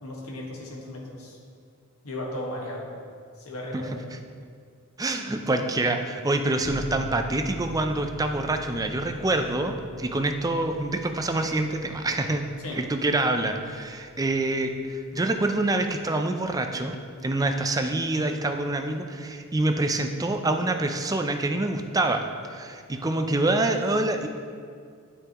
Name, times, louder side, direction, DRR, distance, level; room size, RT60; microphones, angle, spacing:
voice 1, 0.0-1.4 2.0-2.9 3.4-4.1 12.6-12.8, left 1 dB, 80° left, -3 dB, 1.6 m, -36 dB
voice 2, 5.0-12.5 12.7-17.0 17.2-22.2 22.5-24.3, right 2 dB, 15° right, 5 dB, 0.4 m, -26 dB
sound 1, 6.6-17.2, left 1 dB, 15° left, 0.8 m, -44 dB
9.1 x 8.3 x 3.0 m, 2.2 s
head